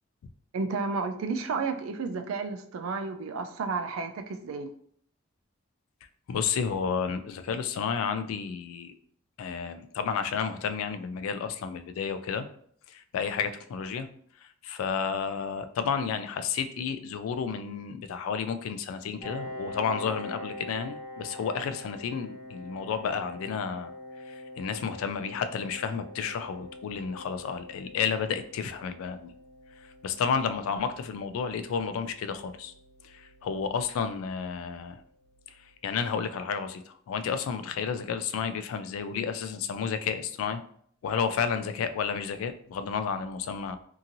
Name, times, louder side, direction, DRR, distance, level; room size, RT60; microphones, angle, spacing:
voice 1, 0.5-4.7, right 4 dB, 90° right, 7 dB, 0.4 m, -32 dB
voice 2, 6.3-8.9 9.4-12.5 12.9-14.1 14.6-23.9 24.3-29.3 30.0-32.7 33.0-35.0 35.8-40.6 41.0-43.8, left 6 dB, 90° left, 10 dB, 0.3 m, -31 dB
Piano, 19.2-34.6, left 1 dB, 35° left, 0.9 m, -45 dB
2.8 x 2.6 x 2.6 m, 0.62 s
head